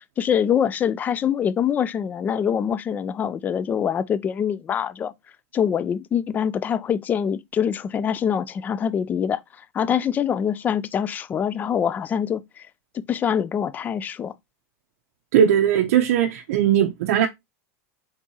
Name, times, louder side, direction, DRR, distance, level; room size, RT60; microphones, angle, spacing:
voice 1, 0.2-5.1 5.5-9.4 9.7-12.7 12.9-14.3, left 8 dB, 20° left, 0.3 m, -24 dB
voice 2, 15.3-17.3, right 9 dB, 75° right, 0.5 m, -19 dB
4.4 x 3.6 x 2.8 m
supercardioid pair, 135°, 8 cm